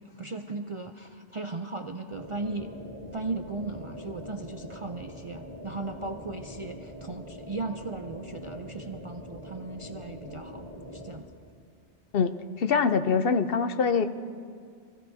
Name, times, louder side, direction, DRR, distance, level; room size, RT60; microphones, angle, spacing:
voice 1, 0.0-2.7 3.1-10.6 10.9-11.3, right 3 dB, 40° right, 5 dB, 0.4 m, -37 dB
sound 1, 2.1-11.2, equal, 35° left, 2.6 m, -43 dB
voice 2, 12.1-14.1, left 5 dB, 60° left, 9 dB, 0.8 m, -24 dB
28.5 x 16.0 x 2.7 m, 2.2 s
omnidirectional pair, 1.2 m